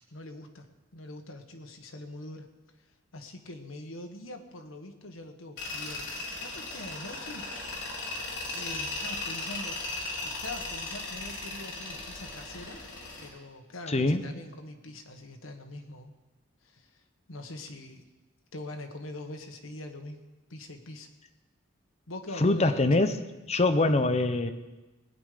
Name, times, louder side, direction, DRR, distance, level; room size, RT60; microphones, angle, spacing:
voice 1, 0.1-0.7 0.9-2.5 3.1-8.2 8.5-9.9 10.2-12.8 13.2-16.1 16.6-17.0 17.3-18.0 18.5-20.2 20.5-21.1 22.1-22.9, left 1 dB, 85° left, 4 dB, 1.5 m, -43 dB
Tools, 5.6-13.3, left 2 dB, 60° left, 3.9 m, -37 dB
voice 2, 13.9-14.2 22.4-23.2 23.5-24.5, left 2 dB, 35° left, 9 dB, 0.8 m, -24 dB
19.5 x 9.4 x 5.1 m, 1.1 s
head